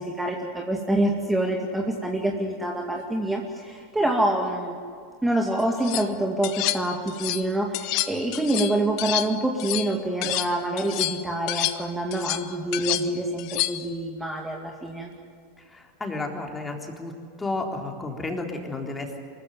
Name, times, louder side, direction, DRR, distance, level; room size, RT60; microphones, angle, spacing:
voice 1, 0.0-4.8 5.2-15.1, right 1 dB, 10° right, 1 dB, 2.2 m, -26 dB
sound 1, 5.6-6.1 6.4-7.5 7.7-10.5 10.8-13.9, left 16 dB, 50° left, 1.0 m, -29 dB
voice 2, 15.7-17.1 17.4-19.2, left 2 dB, 15° left, 2 dB, 3.7 m, -32 dB
25.0 x 14.5 x 9.4 m, 2.3 s
hypercardioid pair, 90°, 0 cm